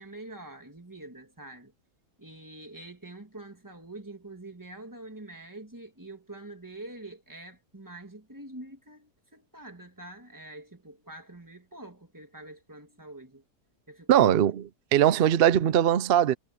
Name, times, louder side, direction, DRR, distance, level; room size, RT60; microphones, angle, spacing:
voice 1, 0.0-1.7 2.2-13.4 13.9-14.4, right 2 dB, 10° right, 2.5 m, -45 dB
voice 2, 14.1-16.3, right 10 dB, 65° right, 0.5 m, -21 dB
omnidirectional pair, 1.6 m